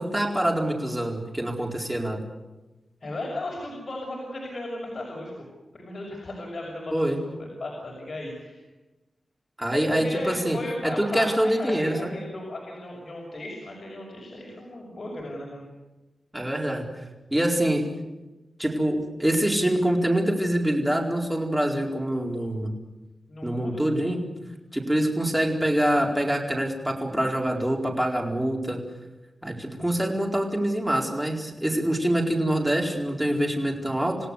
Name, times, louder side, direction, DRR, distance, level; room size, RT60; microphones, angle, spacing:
voice 1, 0.0-2.2 6.9-7.2 9.6-12.1 16.3-16.9 17.3-17.9 18.6-22.7 23.4-24.2 24.7-28.8 29.4-34.2, right 1 dB, 10° right, 0 dB, 4.4 m, -25 dB
voice 2, 3.0-5.3 5.7-6.9 7.4-8.6 9.7-15.6 23.3-23.8, left 1 dB, 50° left, -1 dB, 6.3 m, -35 dB
28.0 x 17.0 x 8.2 m, 1.1 s
wide cardioid pair, 110°, 0 cm